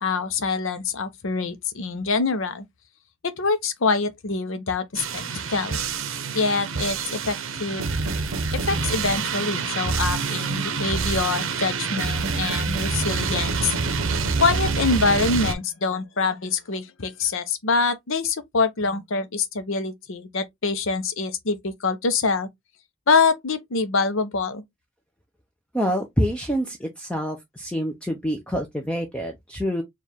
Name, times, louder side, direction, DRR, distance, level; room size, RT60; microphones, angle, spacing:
voice 1, 0.0-2.7 3.2-5.2 5.5-5.8 6.3-8.0 8.5-13.7 14.4-22.5 23.1-24.6, left 4 dB, 65° left, 0.7 m, -25 dB
sound 1, 5.0-15.5, right 4 dB, 65° right, 0.7 m, -26 dB
voice 2, 25.7-29.8, equal, 5° left, 0.5 m, -26 dB
4.5 x 2.4 x 3.5 m
head